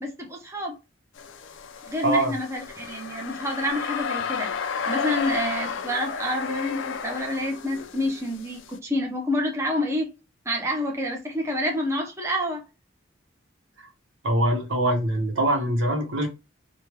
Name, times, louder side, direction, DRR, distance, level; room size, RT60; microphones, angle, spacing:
voice 1, 0.0-0.8 1.9-4.5 4.8-10.1 10.5-12.6, left 1 dB, 15° right, 0.6 m, -28 dB
sound 1, 1.2-8.8, left 6 dB, 75° left, 0.4 m, -32 dB
voice 2, 14.2-16.3, right 1 dB, 80° right, 0.9 m, -23 dB
3.1 x 2.2 x 3.0 m
head